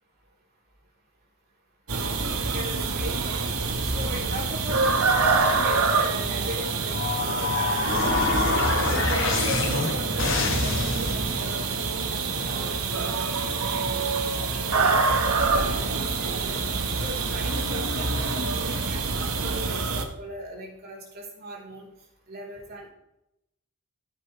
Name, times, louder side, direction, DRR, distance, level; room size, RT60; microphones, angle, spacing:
sound 1, 1.9-20.0, right 4 dB, 75° right, 1.6 m, -26 dB
voice 1, 2.5-3.4 3.9-7.0 7.2-8.5 9.1-14.1 14.5-16.6 17.0-21.9 22.3-22.9, right 1 dB, 45° right, -3 dB, 4.0 m, -39 dB
sound 2, 6.9-11.5, left 3 dB, 60° left, 1.5 m, -26 dB
14.5 x 8.9 x 3.4 m, 0.83 s
head